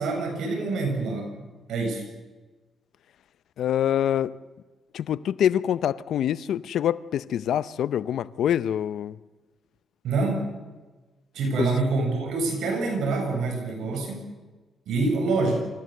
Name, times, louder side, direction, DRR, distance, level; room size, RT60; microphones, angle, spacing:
voice 1, 0.0-2.1 10.0-10.5 11.3-14.2 14.9-15.6, right 3 dB, 80° right, 7.5 m, -26 dB
voice 2, 3.6-4.4 4.9-9.2 11.6-11.7, left 10 dB, 75° left, 0.7 m, -25 dB
26.5 x 15.5 x 7.9 m
cardioid pair, 85°, 0 cm